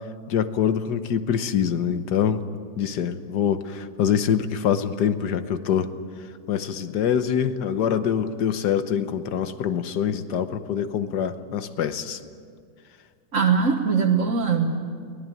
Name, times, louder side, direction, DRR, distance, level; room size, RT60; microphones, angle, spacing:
voice 1, 0.3-2.4 2.8-5.9 6.5-12.2, left 8 dB, 80° left, 10 dB, 1.6 m, -24 dB
voice 2, 13.3-14.8, right 5 dB, 55° right, 1 dB, 1.5 m, -21 dB
23.5 x 18.5 x 9.1 m, 2.1 s
omnidirectional pair, 1.7 m